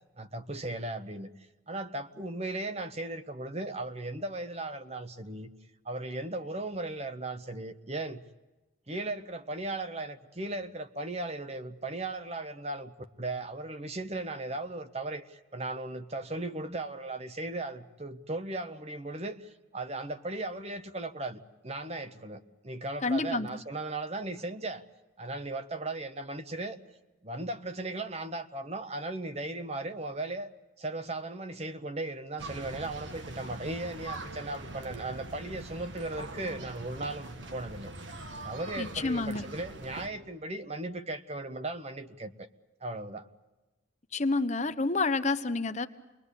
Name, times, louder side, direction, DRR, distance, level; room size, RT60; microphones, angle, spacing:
voice 1, 0.2-5.5 5.8-8.2 8.9-24.8 25.2-26.8 27.2-30.5 30.8-37.9 38.4-42.5 42.8-43.3, right 2 dB, 30° right, 10 dB, 1.1 m, -37 dB
voice 2, 23.0-23.5 38.8-39.5 44.1-45.9, left 3 dB, 35° left, 10 dB, 1.0 m, -29 dB
sound 1, 32.4-40.1, right 2 dB, 65° right, 1.7 m, -43 dB
28.0 x 21.5 x 8.4 m, 1.1 s
head